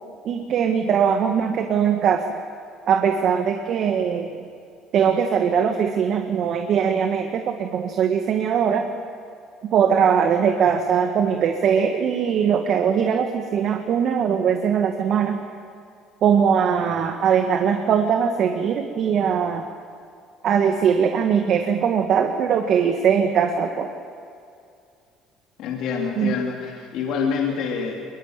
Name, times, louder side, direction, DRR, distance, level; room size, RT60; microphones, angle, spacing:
voice 1, 0.3-2.2 2.9-4.3 4.9-8.9 9.7-15.4 16.2-19.7 20.4-23.9 26.2-26.3, right 7 dB, 60° right, 5 dB, 1.7 m, -21 dB
voice 2, 25.6-27.9, left 6 dB, 70° left, 0 dB, 3.3 m, -26 dB
22.5 x 21.5 x 9.1 m, 2.4 s
supercardioid pair, 80°, 0 cm